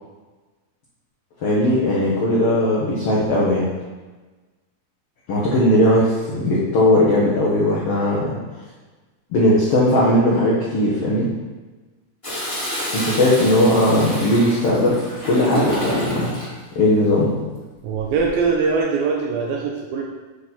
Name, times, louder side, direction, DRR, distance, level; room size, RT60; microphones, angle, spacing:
voice 1, 1.4-3.7 5.3-8.3 9.3-11.3 12.9-16.3 16.7-17.3, left 1 dB, 70° left, -6 dB, 1.4 m, -18 dB
Toilet flush, 12.2-16.5 17.9-18.4, equal, 25° left, 0.7 m, -29 dB
voice 2, 17.8-20.0, right 5 dB, 80° right, -1 dB, 2.4 m, -22 dB
9.3 x 3.9 x 4.2 m, 1.2 s
omnidirectional pair, 4.3 m